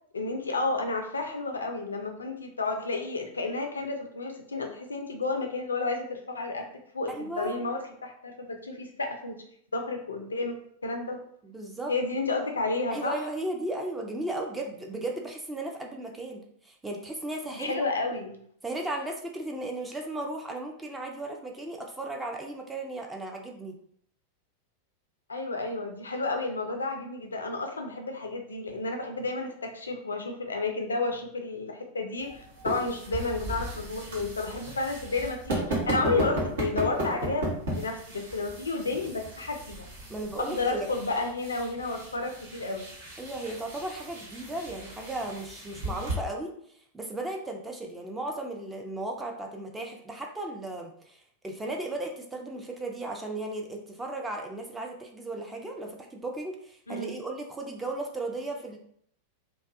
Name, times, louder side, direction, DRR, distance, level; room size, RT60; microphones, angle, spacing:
voice 1, 0.1-6.7 6.9-9.4 9.7-11.2 11.9-13.2 17.5-18.4 25.3-39.9 40.4-42.9 56.9-57.1, left 3 dB, 75° left, 4 dB, 0.3 m, -31 dB
voice 2, 7.1-7.6 11.4-11.9 12.9-17.8 18.6-23.8 40.1-40.9 43.2-46.5 46.9-58.8, right 2 dB, 10° right, 1 dB, 0.4 m, -35 dB
sound 1, 32.2-46.1, right 1 dB, 60° right, 0.8 m, -36 dB
2.5 x 2.2 x 2.5 m, 0.66 s
figure-of-eight pair, 90°, 0 cm